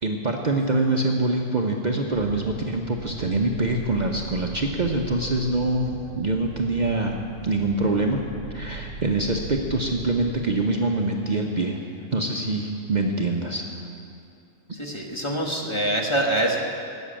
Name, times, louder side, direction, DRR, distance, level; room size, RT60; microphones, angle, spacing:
voice 1, 0.0-7.2 7.4-8.2 8.5-11.8 12.1-13.6, right 2 dB, 40° right, 1 dB, 0.8 m, -24 dB
sound 1, 2.1-11.7, right 3 dB, 75° right, 1.2 m, -39 dB
voice 2, 14.7-16.6, right 1 dB, 25° left, 0 dB, 1.4 m, -25 dB
13.5 x 7.3 x 8.8 m, 2.6 s
omnidirectional pair, 1.3 m